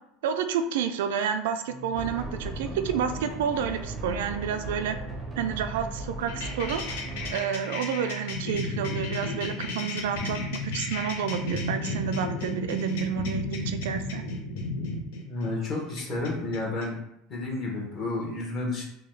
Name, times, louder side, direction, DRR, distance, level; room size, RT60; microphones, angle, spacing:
voice 1, 0.2-5.0 5.4-7.0 7.3-14.2, right 7 dB, 85° right, 8 dB, 0.3 m, -30 dB
sound 1, 1.7-8.4, right 6 dB, 60° left, 1.1 m, -44 dB
sound 2, 1.9-7.3, right 1 dB, 10° right, 0.5 m, -37 dB
sound 3, 6.3-16.8, left 2 dB, 80° left, 0.6 m, -33 dB
voice 2, 15.2-17.0 17.3-18.8, left 2 dB, 35° left, -2 dB, 1.0 m, -31 dB
3.7 x 2.3 x 3.2 m, 0.80 s
supercardioid pair, 150°, 0 cm